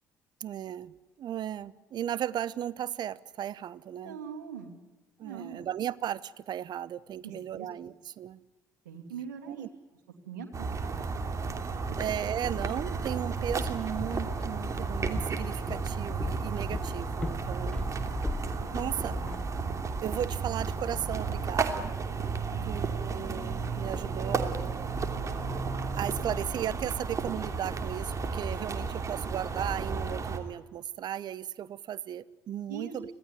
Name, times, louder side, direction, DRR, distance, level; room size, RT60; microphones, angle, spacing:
voice 1, 0.4-4.2 5.2-8.4 9.5-9.7 12.0-17.9 18.7-19.2 20.0-21.9 22.6-24.8 25.9-33.1, right 10 dB, 50° right, 20 dB, 0.9 m, -36 dB
voice 2, 3.9-4.8 5.2-5.6 7.2-7.7 8.8-9.7 10.2-11.1 11.5-11.6 11.9-12.0 19.1-19.4 32.7-33.1, right 6 dB, 80° right, 3 dB, 2.7 m, -43 dB
sound 1, 10.5-30.4, right 4 dB, 35° right, 3.1 m, -33 dB
Walk footsteps, 13.3-19.4, left 2 dB, 15° left, 0.7 m, -38 dB
26.0 x 17.5 x 9.9 m, 1.2 s
figure-of-eight pair, 55°, 9 cm